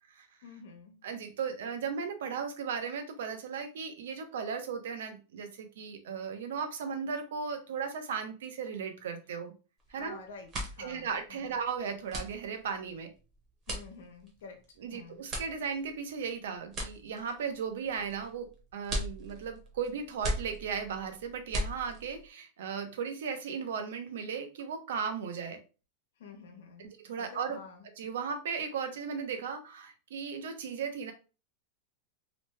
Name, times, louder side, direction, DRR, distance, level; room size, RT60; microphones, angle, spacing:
voice 1, 0.4-1.0 9.9-11.6 13.7-15.3 26.2-27.9, left 5 dB, 90° left, 4 dB, 1.0 m, -50 dB
voice 2, 1.0-9.5 9.9-10.2 10.8-13.1 14.8-25.6 26.8-27.6 28.0-31.1, right 6 dB, 80° right, 6 dB, 0.7 m, -36 dB
sound 1, 9.8-10.1 10.3-22.3, equal, 20° right, 0.8 m, -39 dB
2.9 x 2.1 x 3.2 m, 0.33 s
supercardioid pair, 170°, 0 cm